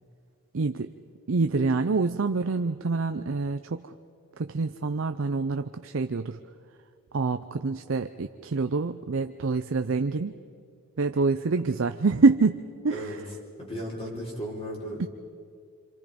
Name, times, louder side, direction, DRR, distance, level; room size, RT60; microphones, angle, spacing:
voice 1, 0.5-0.9 1.3-3.9 4.4-6.4 7.1-10.3 11.0-13.2 15.0-15.1, right 4 dB, 65° right, 8 dB, 0.5 m, -26 dB
voice 2, 13.6-15.1, equal, 30° left, -4 dB, 5.0 m, -35 dB
27.0 x 26.0 x 5.2 m, 2.3 s
head